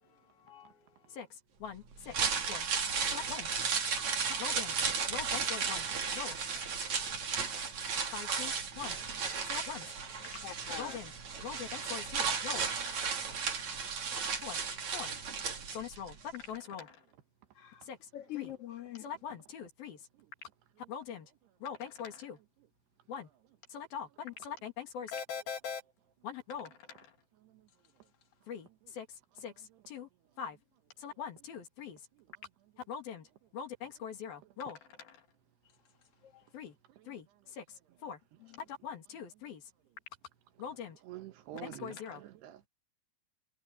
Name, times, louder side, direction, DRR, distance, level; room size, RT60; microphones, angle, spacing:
voice 1, 0.4-1.0 10.4-11.0 17.6-17.8 18.1-19.1 38.5-38.6, left 13 dB, 45° left, 2.3 m, -44 dB
voice 2, 1.1-2.7 3.1-3.5 4.4-4.8 5.1-5.9 6.1-6.8 8.1-9.0 9.5-9.9 10.8-11.1 11.4-13.1 14.4-14.6 14.9-15.1 15.7-17.0 17.8-18.5 19.0-20.0 20.9-21.3 21.6-22.4 23.1-23.3 23.7-25.8 26.2-27.1 28.5-30.1 30.4-30.6 31.0-32.0 32.9-33.3 33.5-35.2 36.5-36.8 37.1-37.6 38.0-38.2 38.7-39.6 40.6-41.0 41.5-42.2, left 7 dB, 60° left, 4.2 m, -43 dB
sound 1, 1.9-16.1 16.4-16.5, right 6 dB, 45° right, 4.1 m, -34 dB
voice 3, 41.1-42.7, right 14 dB, 75° right, 3.3 m, -47 dB
omnidirectional pair, 4.9 m